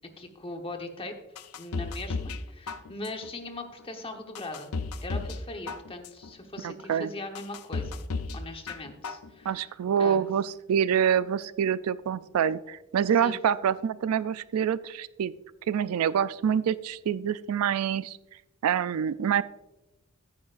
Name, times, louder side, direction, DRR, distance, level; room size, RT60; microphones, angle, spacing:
voice 1, 0.2-1.1 1.6-4.7 5.0-8.0 8.3-9.7 10.0-10.3 13.2-13.4, left 2 dB, 25° left, 5 dB, 1.1 m, -40 dB
sound 1, 1.4-2.4 2.7-3.3 3.8-3.9 4.4-5.4 5.7-6.3 6.8-6.9 7.4-8.4 8.7-9.3 9.6-9.7, left 4 dB, 80° left, 0.6 m, -34 dB
voice 2, 6.6-7.1 9.5-15.3 15.7-18.2 18.6-19.4, right 8 dB, 75° right, 17 dB, 0.3 m, -26 dB
13.5 x 9.4 x 2.5 m, 0.98 s
head